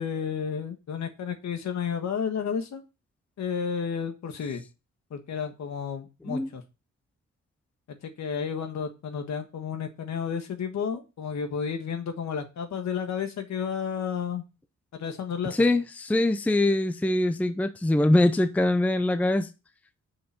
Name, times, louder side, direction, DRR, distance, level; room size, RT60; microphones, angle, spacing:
voice 1, 0.0-2.8 3.4-4.6 5.1-6.6 7.9-14.4 14.9-15.7, left 7 dB, 70° left, 1.5 m, -32 dB
voice 2, 15.6-19.5, left 1 dB, 5° left, 0.5 m, -23 dB
6.7 x 5.5 x 5.9 m
wide cardioid pair, 140°, 29 cm